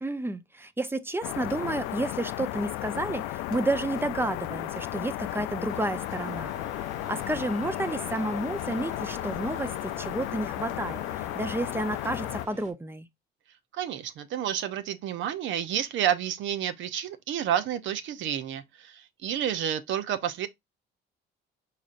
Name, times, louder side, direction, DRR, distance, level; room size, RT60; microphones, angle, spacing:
voice 1, 0.0-6.5 7.1-13.1, right 2 dB, 10° right, 0.6 m, -31 dB
sound 1, 1.2-12.5, left 15 dB, 85° left, 0.4 m, -34 dB
sound 2, 5.7-12.7, right 3 dB, 35° right, 1.2 m, -48 dB
voice 2, 13.7-20.5, right 10 dB, 70° right, 0.7 m, -30 dB
4.9 x 4.2 x 2.5 m
supercardioid pair, 80°, 21 cm